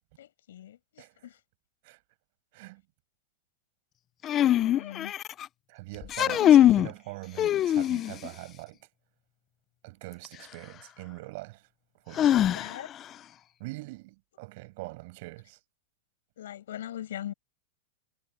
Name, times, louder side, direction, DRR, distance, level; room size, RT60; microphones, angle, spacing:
voice 1, 0.2-1.4 4.5-5.1 6.2-6.8 12.3-12.9 16.4-17.3, left 11 dB, 85° left, 6.7 m, -41 dB
sound 1, 4.2-5.5 6.0-6.9 7.4-8.3 10.2-10.3 12.2-13.0, left 11 dB, 30° left, 0.5 m, -22 dB
voice 2, 5.7-8.9 9.8-11.7 12.1-12.5 13.6-15.6, right 23 dB, 55° right, 5.7 m, -43 dB
supercardioid pair, 140°, 0 cm